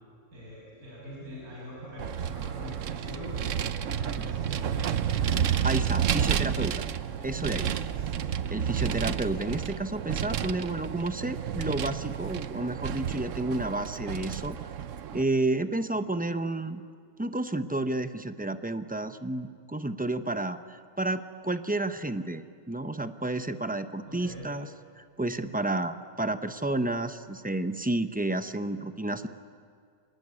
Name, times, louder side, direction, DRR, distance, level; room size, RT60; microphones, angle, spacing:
voice 1, 0.3-5.1 7.9-8.2 24.1-24.5, left 1 dB, 80° right, -5 dB, 7.0 m, -43 dB
Vehicle, 2.0-15.2, right 9 dB, 60° right, 1.1 m, -30 dB
voice 2, 5.6-6.9 7.2-7.7 8.5-14.6 15.1-16.8 17.2-24.7 25.0-29.3, right 2 dB, 10° right, 10 dB, 0.4 m, -31 dB
25.5 x 20.0 x 9.8 m, 2.2 s
omnidirectional pair, 1.5 m